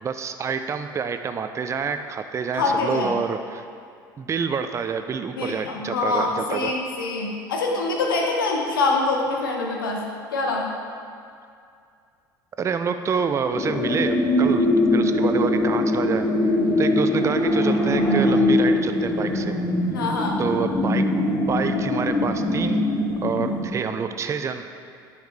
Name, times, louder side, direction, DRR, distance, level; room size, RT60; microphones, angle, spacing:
voice 1, 0.0-3.6 4.2-6.7 12.6-14.7 14.9-19.5 20.4-21.0 21.5-22.8 23.2-24.6, right 6 dB, 25° right, 8 dB, 0.4 m, -27 dB
voice 2, 2.5-3.2 5.4-10.7 19.9-20.4, left 3 dB, 85° left, 0 dB, 1.0 m, -25 dB
sound 1, 13.5-23.7, left 1 dB, 25° left, 1.2 m, -22 dB
9.3 x 4.9 x 3.4 m, 2.3 s
hypercardioid pair, 70°, 11 cm